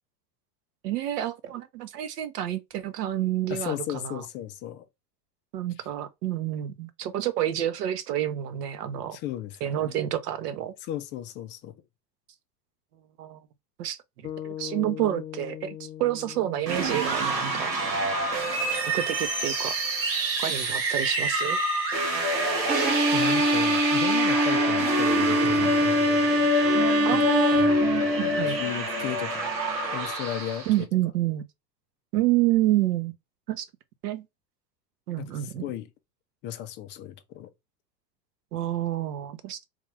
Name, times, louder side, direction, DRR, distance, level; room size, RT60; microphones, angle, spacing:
voice 1, 0.8-4.2 5.5-9.2 9.6-10.7 13.2-13.4 13.8-14.0 14.4-18.0 18.9-19.8 20.4-21.6 27.0-27.6 28.2-28.6 30.7-31.4 32.1-33.1 33.5-33.6 34.0-34.2 35.1-35.7 38.5-39.6, right 13 dB, 65° right, 0.9 m, -28 dB
voice 2, 3.5-4.8 9.1-10.0 10.8-11.8 23.1-26.0 27.1-27.2 28.5-29.5 29.9-30.9 35.2-35.9 36.4-37.5, left 12 dB, 25° left, 0.3 m, -35 dB
sound 1, 14.2-18.6, left 11 dB, 85° left, 0.7 m, -41 dB
sound 2, 16.6-30.8, right 1 dB, 90° right, 1.3 m, -27 dB
Bowed string instrument, 22.7-28.6, equal, 20° right, 0.7 m, -23 dB
3.5 x 2.4 x 3.2 m
hypercardioid pair, 90°, 50 cm